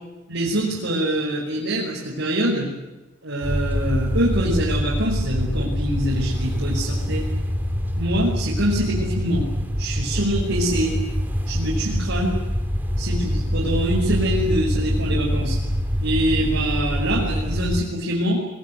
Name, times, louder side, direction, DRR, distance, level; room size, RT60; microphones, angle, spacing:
voice 1, 0.3-2.7 3.2-7.3 8.0-9.5 9.8-11.0 11.5-12.4 13.0-15.6 16.0-18.4, right 1 dB, 65° right, -4 dB, 5.6 m, -24 dB
sound 1, 3.4-17.8, equal, 10° right, 2.8 m, -25 dB
23.5 x 21.0 x 9.6 m, 1.1 s
head